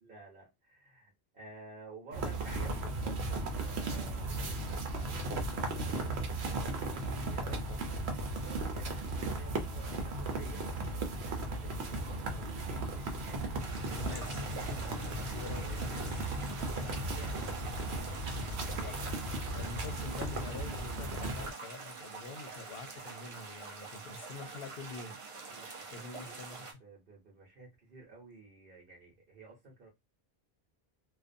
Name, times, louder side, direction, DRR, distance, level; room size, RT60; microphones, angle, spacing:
voice 1, 0.0-5.2 5.9-7.6 8.4-16.0 16.4-17.6 18.8-19.2 25.5-25.7 26.0-29.9, right 3 dB, 60° right, 1.0 m, -53 dB
sound 1, 2.1-21.5, right 2 dB, 85° right, 0.9 m, -36 dB
voice 2, 6.4-7.0 7.4-8.0 13.9-14.4 15.3-16.2 18.3-18.9 19.5-25.2 25.9-26.7, left 4 dB, 70° left, 0.7 m, -46 dB
sound 2, 13.6-26.7, right 4 dB, 40° right, 0.5 m, -46 dB
2.4 x 2.2 x 2.5 m
omnidirectional pair, 1.1 m